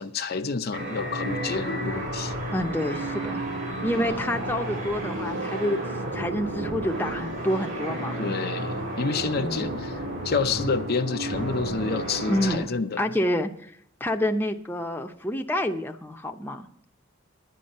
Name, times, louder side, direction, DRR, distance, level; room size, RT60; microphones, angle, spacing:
voice 1, 0.0-2.3 3.9-4.1 8.2-13.0, left 4 dB, 50° left, 0.6 m, -29 dB
sound 1, 0.7-12.6, right 1 dB, 65° right, 3.6 m, -32 dB
voice 2, 2.5-3.4 3.8-5.8 6.1-8.2 9.4-9.7 12.3-12.7 13.0-13.7 14.0-16.7, left 1 dB, 10° left, 0.7 m, -28 dB
10.5 x 10.0 x 5.4 m
head